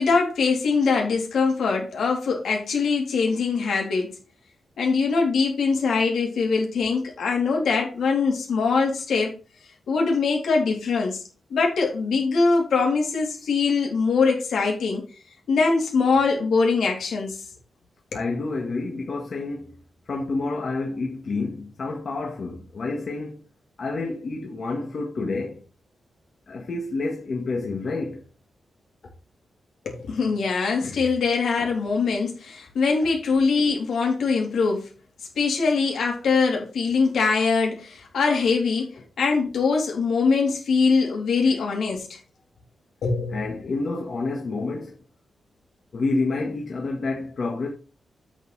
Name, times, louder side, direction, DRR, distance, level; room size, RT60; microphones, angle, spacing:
voice 1, 0.0-4.1 4.8-9.3 9.9-11.2 11.5-15.1 15.5-17.4 29.9-34.9 35.4-38.9 39.2-42.2 43.0-43.4, left 4 dB, 80° left, 3.4 m, -22 dB
voice 2, 18.1-19.8 20.1-23.4 23.8-25.6 26.5-28.3 30.8-31.0 41.4-41.6 43.3-45.0 45.9-47.7, left 3 dB, 45° left, 1.7 m, -29 dB
8.0 x 7.1 x 4.2 m
wide cardioid pair, 160°, 0 cm